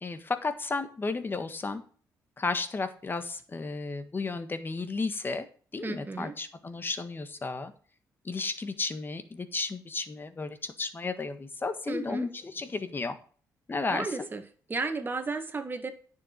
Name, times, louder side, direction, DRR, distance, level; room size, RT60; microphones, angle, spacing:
voice 1, 0.0-1.8 2.4-5.5 5.7-7.7 8.2-13.2 13.7-14.3, left 3 dB, 30° left, 10 dB, 1.6 m, -33 dB
voice 2, 5.8-6.4 11.9-12.3 13.9-14.4 14.7-15.9, right 3 dB, 30° right, 6 dB, 1.9 m, -33 dB
10.0 x 7.1 x 5.3 m, 0.43 s
cardioid pair, 85°, 7 cm